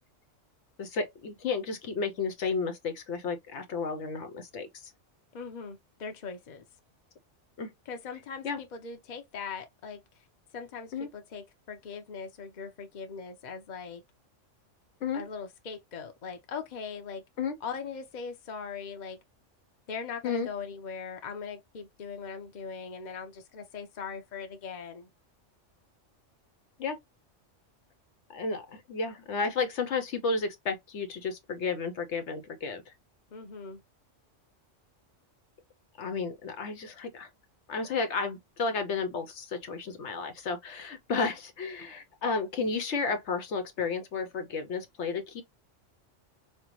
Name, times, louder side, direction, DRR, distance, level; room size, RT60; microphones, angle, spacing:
voice 1, 0.8-4.9 7.6-7.7 8.4-8.6 10.9-11.1 15.0-15.2 17.4-17.6 20.2-20.5 26.8-27.0 28.3-32.9 36.0-37.3 37.7-45.4, left 4 dB, 70° left, 1.0 m, -32 dB
voice 2, 5.3-6.6 7.9-10.0 10.5-14.0 15.1-17.2 17.6-19.2 19.9-25.1 33.3-33.8, left 5 dB, 40° left, 0.8 m, -40 dB
5.5 x 2.2 x 3.0 m
omnidirectional pair, 1.3 m